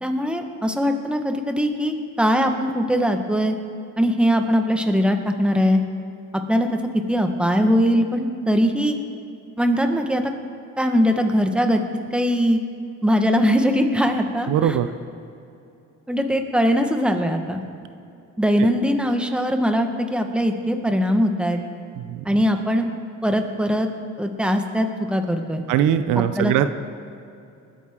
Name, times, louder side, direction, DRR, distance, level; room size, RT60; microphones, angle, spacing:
voice 1, 0.0-3.5 4.0-5.8 6.5-6.7 7.1-9.0 9.6-10.3 10.8-11.8 12.1-12.6 13.0-14.8 16.1-17.6 18.4-21.6 22.2-22.9 23.2-23.9 24.2-25.6 26.2-26.6, equal, 5° right, 5 dB, 1.3 m, -21 dB
voice 2, 14.5-14.9 18.6-18.7 22.0-22.2 25.7-26.7, right 10 dB, 85° right, 11 dB, 0.6 m, -21 dB
21.0 x 9.4 x 3.7 m, 2.6 s
cardioid pair, 90°, 30 cm